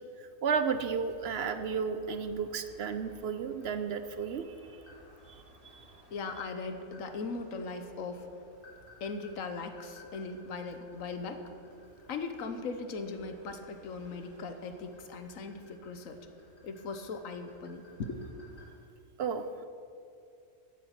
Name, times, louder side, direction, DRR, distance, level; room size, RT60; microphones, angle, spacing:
voice 1, 0.2-4.5 5.3-5.4 5.7-5.9 19.2-19.7, right 6 dB, 60° right, 10 dB, 0.8 m, -33 dB
sound 1, 0.7-18.7, left 1 dB, 40° left, 3.0 m, -58 dB
voice 2, 6.1-8.3 9.0-11.5 12.1-16.3 16.6-18.5, left 4 dB, 90° left, 8 dB, 1.4 m, -39 dB
15.0 x 8.4 x 5.9 m, 2.6 s
omnidirectional pair, 1.4 m